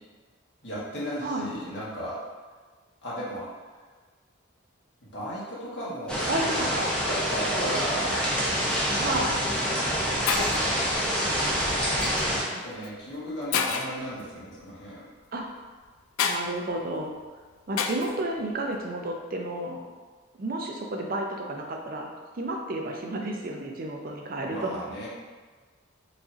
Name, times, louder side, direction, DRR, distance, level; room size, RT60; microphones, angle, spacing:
voice 1, 0.6-2.2 3.0-3.8 5.1-6.2 6.5-6.7 7.1-8.1 8.4-9.2 9.5-11.7 12.5-15.0 24.4-25.1, equal, 60° left, -8 dB, 1.3 m, -36 dB
voice 2, 1.2-1.5 6.3-6.9 7.6-8.1 9.0-9.4 15.3-15.5 16.2-17.1 17.7-19.8 20.4-24.8, right 1 dB, 45° right, 1 dB, 0.5 m, -31 dB
sound 1, 6.1-12.4, equal, 5° left, 0.5 m, -26 dB
Shatter, 9.0-9.3 10.0-10.1 10.3-10.7 12.0-12.2 12.8-12.9 13.5-14.0 16.2-16.4 17.8-18.2, left 6 dB, 90° left, 0.3 m, -28 dB
4.8 x 2.6 x 2.6 m, 1.4 s
head